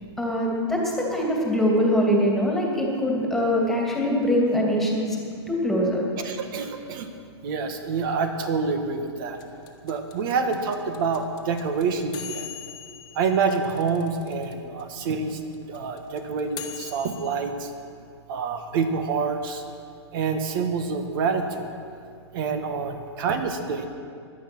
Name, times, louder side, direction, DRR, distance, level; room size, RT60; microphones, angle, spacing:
voice 1, 0.2-5.2 5.5-6.0, equal, ahead, -2 dB, 2.6 m, -23 dB
voice 2, 6.2-7.1 7.4-9.4 9.8-12.5 13.1-15.4 15.7-17.7 18.3-19.6 20.1-21.7 22.3-23.9, right 5 dB, 50° right, 7 dB, 1.7 m, -27 dB
sound 1, 9.4-14.5 14.8-14.9 15.1-17.4, left 12 dB, 30° left, 1.5 m, -40 dB
17.5 x 11.5 x 6.1 m, 2.4 s
hypercardioid pair, 145°, 15 cm